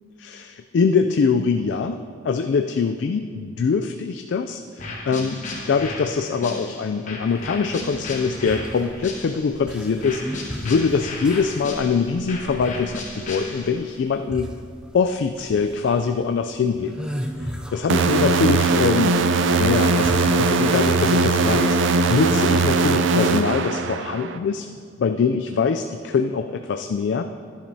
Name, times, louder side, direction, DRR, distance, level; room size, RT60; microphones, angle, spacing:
voice 1, 0.2-14.5 14.9-17.1 17.4-19.2 19.6-24.7 25.0-27.2, left 5 dB, 65° left, 6 dB, 0.3 m, -23 dB
sound 1, 4.8-9.6 10.0-14.0, left 2 dB, 40° left, 1.2 m, -35 dB
sound 2, 7.4-20.8, equal, 5° right, 0.4 m, -36 dB
sound 3, 17.9-24.4, right 3 dB, 70° right, 0.4 m, -20 dB
11.5 x 10.5 x 2.7 m, 2.2 s
head